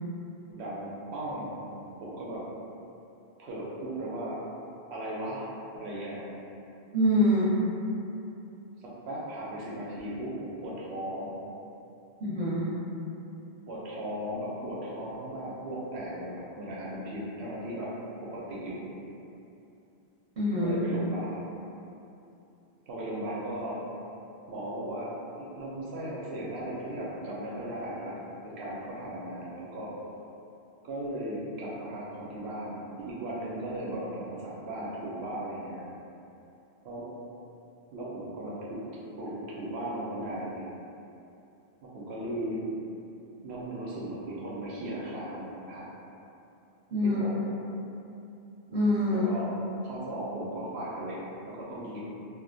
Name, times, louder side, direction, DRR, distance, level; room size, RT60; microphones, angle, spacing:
voice 1, 0.5-2.4 3.4-4.4 4.9-6.3 8.8-11.3 13.7-17.9 18.2-18.9 20.6-21.5 22.9-23.8 24.5-25.1 25.4-28.1 28.4-30.0 30.8-35.9 36.8-37.1 37.9-38.9 39.2-40.6 41.8-42.7 43.4-45.8 47.0-47.3 49.1-49.5 49.8-52.0, right 1 dB, 85° right, -5 dB, 0.8 m, -37 dB
voice 2, 6.9-7.5 12.2-12.7 20.4-20.8 46.9-47.2 48.7-49.3, left 1 dB, 50° right, -11 dB, 0.7 m, -25 dB
2.4 x 2.1 x 2.5 m, 2.8 s
omnidirectional pair, 1.1 m